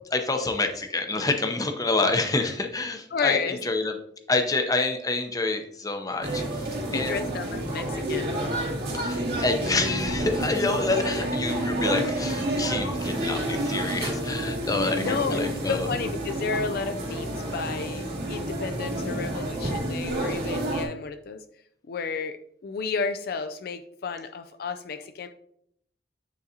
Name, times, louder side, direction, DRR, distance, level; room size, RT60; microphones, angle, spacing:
voice 1, 0.1-3.9 4.3-7.2 8.9-15.9, left 3 dB, 20° left, 5 dB, 0.7 m, -27 dB
voice 2, 3.1-3.6 6.9-8.7 15.0-21.4 21.9-25.3, left 5 dB, 60° left, 9 dB, 0.4 m, -32 dB
sound 1, 6.2-20.9, right 1 dB, 65° right, 2.0 m, -29 dB
9.2 x 3.9 x 2.8 m, 0.69 s
head